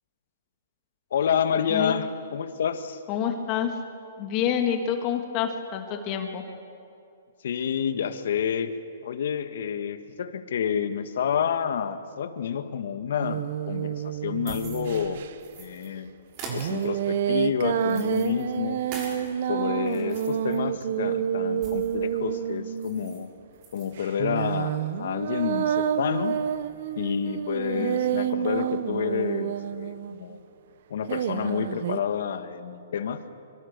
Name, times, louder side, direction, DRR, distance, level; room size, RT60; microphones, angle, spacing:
voice 1, 1.1-3.0 7.4-8.7 9.0-15.2 15.6-16.1 16.5-18.8 19.5-23.3 23.7-26.4 26.9-30.4 30.9-33.2, left 7 dB, 65° left, 9 dB, 1.8 m, -29 dB
voice 2, 3.1-3.8 4.2-6.4 27.7-27.9, left 8 dB, 35° left, 3 dB, 2.8 m, -27 dB
sound 1, 13.2-15.3 16.5-23.2 24.0-30.4 31.1-32.0, right 9 dB, 55° right, 1.1 m, -29 dB
sound 2, 14.1-15.9 16.3-19.3 19.7-22.1 22.4-22.5 22.7-23.2 23.5-23.9, right 3 dB, 35° right, 6.9 m, -43 dB
25.0 x 24.5 x 6.9 m, 2.6 s
hypercardioid pair, 140°, 0 cm